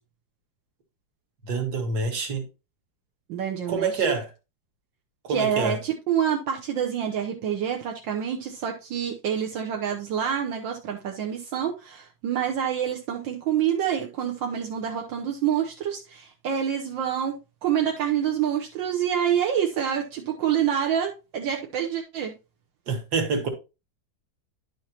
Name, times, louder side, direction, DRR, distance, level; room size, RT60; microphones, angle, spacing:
voice 1, 1.4-2.4 3.7-4.3 5.2-5.8 22.9-23.5, right 4 dB, 60° right, 2.0 m, -26 dB
voice 2, 3.3-4.0 5.3-22.3, right 9 dB, 80° right, 1.6 m, -27 dB
10.0 x 6.3 x 2.8 m
omnidirectional pair, 2.1 m